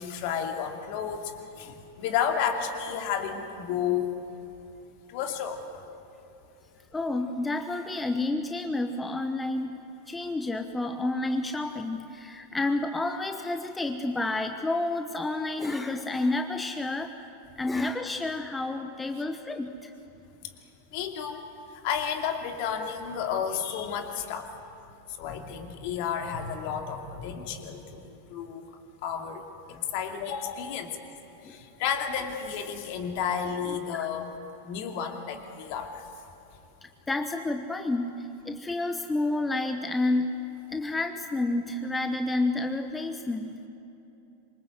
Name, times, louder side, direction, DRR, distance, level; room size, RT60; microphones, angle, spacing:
voice 1, 0.0-4.1 5.1-5.6 20.9-21.4 21.7-24.5 25.2-28.6 29.0-30.9 31.4-34.3 34.6-36.0, left 7 dB, 45° left, 5 dB, 2.6 m, -32 dB
voice 2, 6.9-9.8 10.1-17.1 17.6-19.9 31.4-31.6 34.0-34.1 37.1-40.4 40.7-43.7, left 2 dB, 10° left, 7 dB, 1.2 m, -30 dB
26.5 x 24.0 x 8.0 m, 2.9 s
figure-of-eight pair, 90°, 0 cm